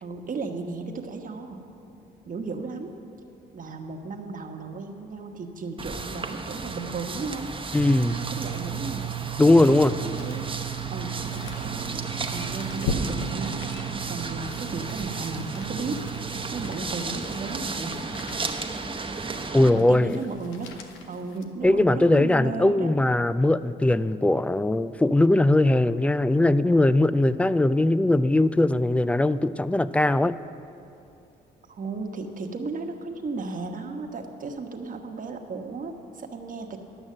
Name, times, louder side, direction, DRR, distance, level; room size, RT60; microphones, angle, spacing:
voice 1, 0.0-1.6 2.3-2.9 3.5-7.5 8.1-9.1 9.5-10.5 10.9-12.0 12.3-13.7 14.1-16.0 16.5-18.0 19.7-20.7 21.1-22.9 31.7-36.8, right 3 dB, 45° right, 4 dB, 1.2 m, -34 dB
sound 1, 5.8-19.7, right 4 dB, 25° right, 0.9 m, -34 dB
voice 2, 7.7-8.2 9.4-9.9 19.5-20.2 21.6-30.4, left 2 dB, 5° left, 15 dB, 0.3 m, -20 dB
sound 2, 7.7-16.7, right 16 dB, 70° right, 0.8 m, -36 dB
sound 3, 9.4-22.0 22.5-22.6, left 3 dB, 85° left, 0.8 m, -40 dB
11.5 x 6.2 x 7.5 m, 2.7 s
supercardioid pair, 65°, 20 cm